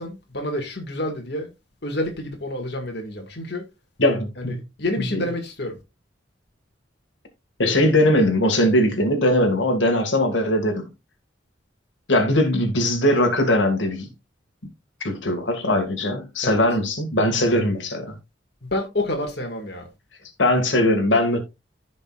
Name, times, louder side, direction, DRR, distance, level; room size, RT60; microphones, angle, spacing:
voice 1, 0.0-1.5 1.8-3.7 4.4-5.8 16.4-16.6 18.6-19.9, left 1 dB, 60° left, 2.0 m, -29 dB
voice 2, 4.0-4.6 5.0-5.2 7.6-10.9 12.1-14.1 15.0-18.2 20.4-21.4, left 1 dB, 80° left, 2.1 m, -20 dB
15.0 x 5.3 x 2.4 m
head